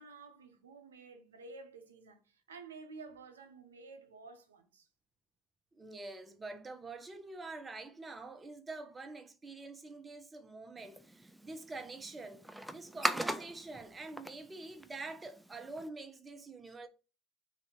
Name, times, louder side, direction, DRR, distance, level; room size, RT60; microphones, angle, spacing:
voice 1, 0.0-4.9, right 4 dB, 90° right, 0.6 m, -52 dB
voice 2, 5.7-16.9, right 3 dB, 25° right, 0.8 m, -46 dB
sound 1, 10.8-15.9, right 1 dB, 5° right, 0.4 m, -40 dB
3.2 x 2.7 x 4.3 m
hypercardioid pair, 70°, 0 cm